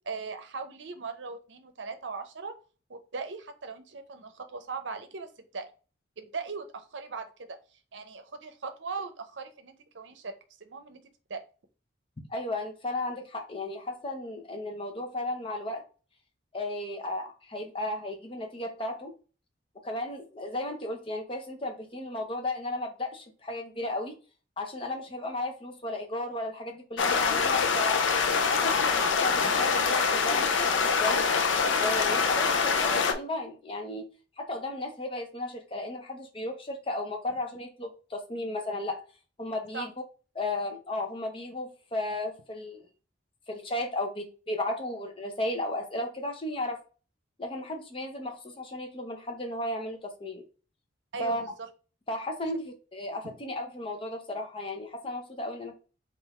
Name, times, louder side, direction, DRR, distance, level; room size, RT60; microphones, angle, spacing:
voice 1, 0.1-2.5 2.9-5.7 6.2-7.6 7.9-11.0 11.3-11.4 39.7-39.9 51.1-51.5 53.2-53.4, right 4 dB, 75° right, 0.6 m, -39 dB
voice 2, 12.3-15.8 16.5-19.1 19.8-24.2 24.6-28.0 28.5-31.2 31.7-34.1 34.4-39.0 39.4-39.9 40.3-42.9 43.5-46.8 47.4-50.4 51.2-51.4 52.1-55.7, left 1 dB, 30° left, 0.7 m, -34 dB
sound 1, 27.0-33.1, left 5 dB, 85° left, 0.6 m, -25 dB
3.8 x 2.5 x 4.2 m
head